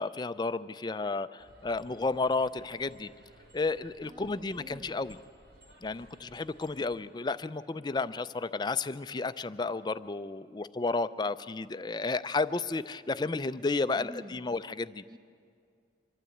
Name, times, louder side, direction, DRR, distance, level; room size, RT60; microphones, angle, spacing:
voice 1, 0.0-3.1 3.5-5.2 5.8-15.0, left 3 dB, 25° left, 13 dB, 0.4 m, -32 dB
sound 1, 1.4-7.0, equal, 80° right, 4.0 m, -58 dB
voice 2, 4.0-5.0 14.0-14.4 15.1-15.2, equal, 25° right, 8 dB, 0.6 m, -48 dB
25.0 x 12.5 x 8.4 m, 2.3 s
head